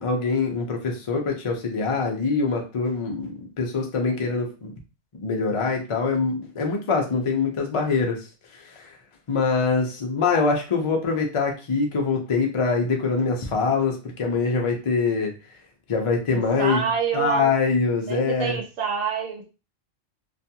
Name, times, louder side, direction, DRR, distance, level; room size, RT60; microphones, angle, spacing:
voice 1, 0.0-4.7 5.1-8.3 8.5-8.9 9.3-15.3 15.9-16.8 17.1-18.6, left 4 dB, 60° left, 2 dB, 0.3 m, -24 dB
voice 2, 16.3-17.5 18.1-19.4, right 6 dB, 85° right, 1 dB, 1.0 m, -27 dB
2.4 x 2.3 x 2.7 m, 0.31 s
omnidirectional pair, 1.3 m